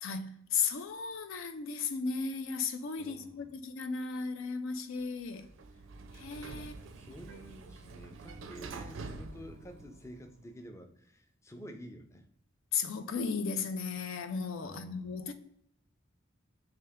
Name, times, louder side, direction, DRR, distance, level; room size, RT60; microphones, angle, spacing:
voice 1, 0.0-5.5 6.2-6.7 12.7-15.3, left 5 dB, 80° left, 0.5 m, -35 dB
voice 2, 3.0-3.5 6.6-12.3 14.6-15.3, equal, 15° left, 0.4 m, -50 dB
Sliding door, 5.2-10.4, right 3 dB, 75° right, 0.4 m, -47 dB
3.3 x 2.8 x 3.4 m
head